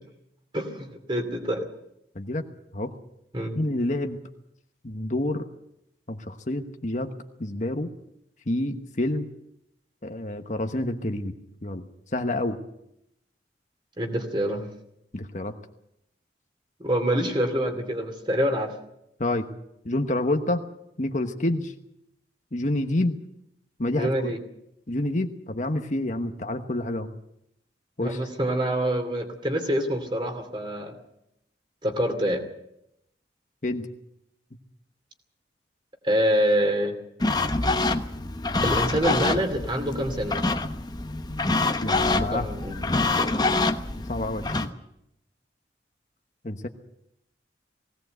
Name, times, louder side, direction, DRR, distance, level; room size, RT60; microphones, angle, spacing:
voice 1, 0.5-1.7 3.3-3.6 14.0-14.7 16.8-18.7 24.0-24.4 28.0-30.9 31.8-32.4 36.0-36.9 38.6-40.4 42.1-42.8 43.2-43.7, equal, 25° right, 5 dB, 2.6 m, -26 dB
voice 2, 3.6-4.2 4.8-5.5 6.1-7.1 7.4-7.9 8.5-9.2 10.0-11.8 12.1-12.6 15.1-15.5 19.2-19.5 19.8-20.6 21.0-21.7 22.5-23.2 23.8-24.4 24.9-27.1 28.0-28.2 33.6-33.9 41.8-42.5 44.1-44.7 46.4-46.7, left 1 dB, 45° left, 6 dB, 1.2 m, -28 dB
sound 1, 37.2-44.7, left 2 dB, 25° left, 1.0 m, -26 dB
20.0 x 17.5 x 8.0 m, 0.81 s
head